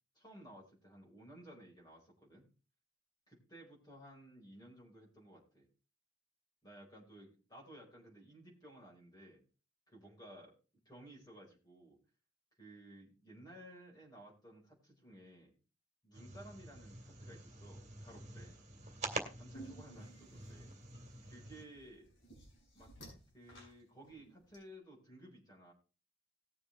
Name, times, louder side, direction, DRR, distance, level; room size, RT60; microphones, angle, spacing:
voice 1, 0.1-2.5 3.3-5.7 6.6-9.4 9.9-12.0 12.6-15.5 16.0-18.6 19.4-20.7 21.2-22.1 22.7-22.9 23.3-25.7, right 1 dB, 25° left, -4 dB, 4.8 m, -56 dB
sound 1, 16.1-21.6, right 2 dB, 40° right, 2.3 m, -47 dB
sound 2, 19.5-24.6, right 1 dB, 70° left, 6.5 m, -56 dB
19.0 x 7.0 x 3.2 m, 0.34 s
head